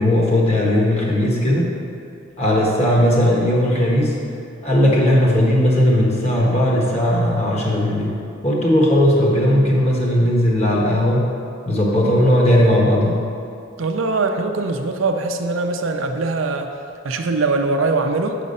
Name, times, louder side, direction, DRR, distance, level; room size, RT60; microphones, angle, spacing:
voice 1, 0.0-1.7 2.4-4.2 4.6-8.1 8.4-11.3 11.7-13.3, left 1 dB, 30° left, -3 dB, 1.3 m, -17 dB
voice 2, 13.8-16.8 17.0-18.4, right 3 dB, 80° right, 5 dB, 0.6 m, -22 dB
7.5 x 5.0 x 5.4 m, 2.5 s
head